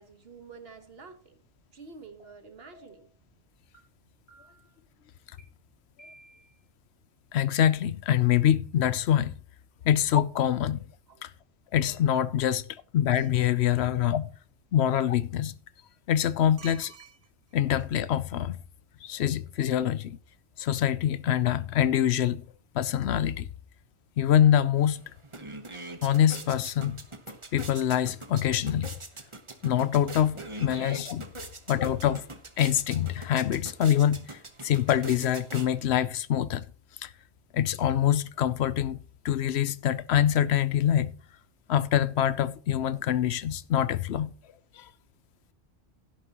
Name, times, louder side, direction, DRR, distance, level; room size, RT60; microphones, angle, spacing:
voice 1, 0.0-1.4 1.7-3.1 11.1-11.3 31.4-31.5, right 4 dB, 55° right, 1.6 m, -49 dB
sound 1, 2.2-2.3 2.7-3.1 3.7-3.8 4.3-4.7 5.4-5.5 6.0-6.6, right 1 dB, 40° left, 3.9 m, -55 dB
voice 2, 7.3-9.3 9.8-10.9 11.2-11.3 11.7-12.7 12.9-14.3 14.7-15.5 16.1-16.9 17.5-18.6 19.0-20.2 20.6-22.5 22.7-23.5 24.2-25.0 26.0-27.0 27.5-28.9 29.6-31.2 31.7-32.3 32.6-36.7 37.0-37.1 37.5-41.1 41.7-44.3 44.8-44.9, left 10 dB, 70° left, 0.9 m, -25 dB
sound 2, 13.1-13.4 16.6-17.5 17.8-17.9, right 8 dB, 75° right, 1.2 m, -48 dB
sound 3, 24.8-24.9 25.2-36.1, right 2 dB, 25° right, 1.1 m, -43 dB
11.5 x 11.0 x 3.0 m
omnidirectional pair, 1.2 m